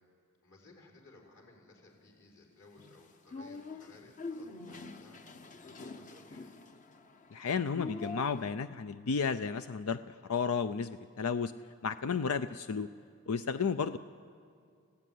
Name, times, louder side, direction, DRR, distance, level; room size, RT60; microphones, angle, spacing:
voice 1, 0.4-5.2 5.6-6.6, left 2 dB, 60° left, -1 dB, 5.2 m, -58 dB
sound 1, 2.8-8.5, left 3 dB, 35° left, 0.9 m, -45 dB
voice 2, 7.3-11.5 11.8-12.9 13.3-14.0, left 5 dB, 80° left, 11 dB, 0.5 m, -33 dB
29.5 x 16.0 x 9.4 m, 2.3 s
head